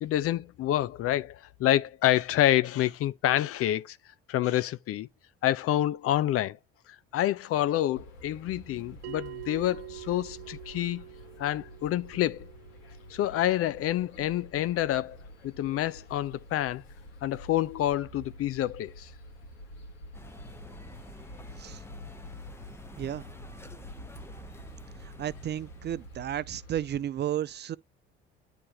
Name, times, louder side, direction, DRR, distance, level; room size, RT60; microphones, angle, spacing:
voice 1, 0.0-4.0 4.3-5.1 5.4-6.6 7.1-11.0 11.4-12.5 13.1-15.2 15.4-16.8 17.2-19.1, left 13 dB, 45° left, 0.5 m, -27 dB
sound 1, 7.9-27.0, equal, 75° left, 1.7 m, -48 dB
Bell, 9.0-14.1, right 19 dB, 75° right, 0.8 m, -46 dB
sound 2, 20.1-26.3, left 1 dB, 10° left, 0.8 m, -49 dB
voice 2, 23.0-23.3 25.0-27.8, right 11 dB, 35° right, 0.4 m, -33 dB
9.8 x 3.4 x 2.9 m
hypercardioid pair, 60°, 31 cm